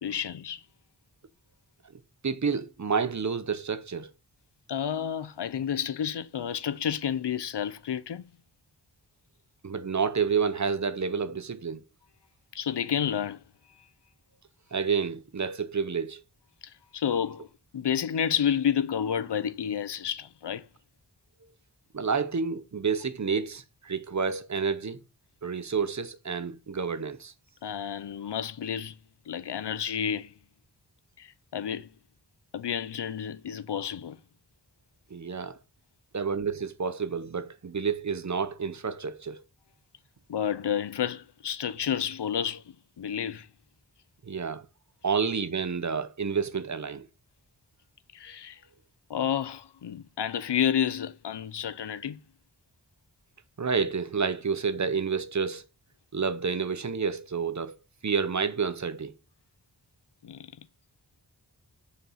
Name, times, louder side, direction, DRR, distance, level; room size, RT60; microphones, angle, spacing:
voice 1, 0.0-0.6 4.7-8.3 12.5-13.4 16.6-20.7 27.6-29.0 29.3-30.3 31.2-31.9 32.5-34.2 40.3-43.5 48.1-48.6 49.1-52.2 60.2-60.6, left 8 dB, 90° left, 0.6 m, -30 dB
voice 2, 2.2-4.1 9.6-11.8 14.7-16.2 21.9-25.0 25.4-27.3 35.1-35.6 36.1-39.4 44.2-44.6 45.0-47.1 53.6-55.6 56.1-57.8 58.0-59.1, right 5 dB, 45° right, 0.7 m, -29 dB
5.5 x 4.9 x 5.7 m
wide cardioid pair, 75°, 40 cm